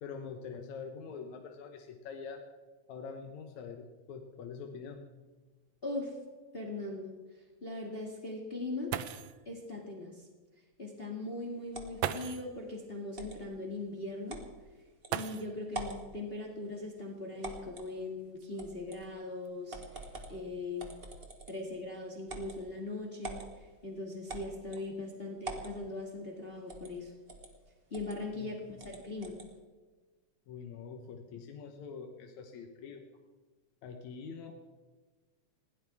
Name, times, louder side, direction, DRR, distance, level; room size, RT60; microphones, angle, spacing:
voice 1, 0.0-2.4 2.9-5.0 28.4-28.6 30.5-33.1 33.8-34.5, left 5 dB, 70° left, 3 dB, 2.4 m, -44 dB
sound 1, 5.0-5.1 5.5-5.6 6.2-6.3 8.6-8.7 8.9-9.5 10.7-10.8 12.0-12.6 15.0-15.8 17.2-17.3 18.0-19.5 20.2-20.5 20.9-21.3, right 11 dB, 75° right, 1.9 m, -39 dB
voice 2, 5.8-6.1 6.5-7.1 7.6-8.9 9.5-10.3 10.8-14.4 15.1-20.9 21.5-23.4 23.8-27.1 27.9-28.6 28.8-29.4, left 2 dB, 20° left, -1 dB, 2.1 m, -40 dB
sound 2, 11.7-12.1 13.1-13.4 14.3-14.5 15.0-15.1 15.7-16.0 17.4-17.9 18.6-19.0 19.7-20.4 20.8-21.7 22.3-22.6 23.2-23.5 24.3-24.9 25.4-25.7 26.7-26.9 27.3-27.5 27.9-28.2 28.8-29.5, right 2 dB, 25° right, 1.4 m, -44 dB
20.5 x 16.5 x 3.6 m, 1.3 s
omnidirectional pair, 3.5 m